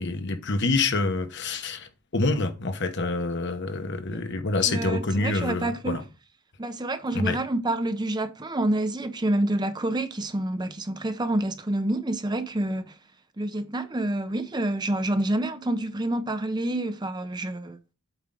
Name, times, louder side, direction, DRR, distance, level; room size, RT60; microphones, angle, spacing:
voice 1, 0.0-6.0 7.1-7.4, left 3 dB, 55° left, 1.1 m, -27 dB
voice 2, 4.6-5.9 6.6-13.0 13.4-17.8, right 1 dB, 20° right, 0.6 m, -28 dB
8.2 x 4.7 x 3.8 m
head